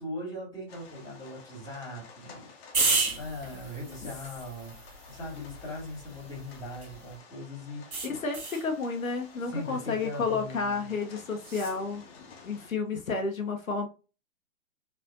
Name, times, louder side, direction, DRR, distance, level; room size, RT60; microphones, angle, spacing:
voice 1, 0.0-2.5 2.9-7.9 9.4-10.9, left 1 dB, 10° left, 2.1 m, -40 dB
sound 1, 0.7-12.7, left 5 dB, 45° left, 1.2 m, -52 dB
sound 2, 2.7-7.1 7.9-8.7 11.4-11.8, right 3 dB, 85° right, 1.1 m, -33 dB
voice 2, 8.0-12.0 12.4-13.9, left 4 dB, 70° left, 1.0 m, -31 dB
4.5 x 3.3 x 2.6 m
figure-of-eight pair, 115°, 42 cm